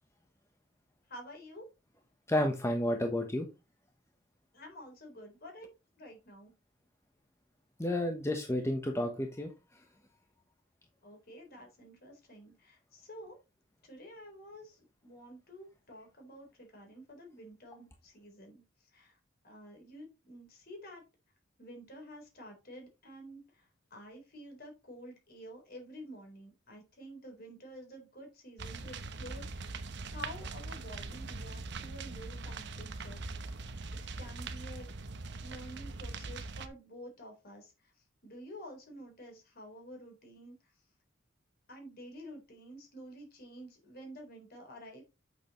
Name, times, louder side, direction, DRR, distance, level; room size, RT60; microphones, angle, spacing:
voice 1, 1.1-1.7 4.5-6.5 11.0-13.4 13.8-18.6 18.9-19.2 19.4-21.0 21.6-29.8 30.1-33.4 34.2-34.9 35.4-37.9 38.2-40.5 41.7-45.0, equal, 50° left, 4.1 m, -50 dB
voice 2, 2.3-3.5 7.8-9.5, left 1 dB, 15° left, 1.0 m, -31 dB
sound 1, 28.6-36.7, right 3 dB, 60° right, 0.9 m, -42 dB
8.4 x 6.9 x 3.1 m
head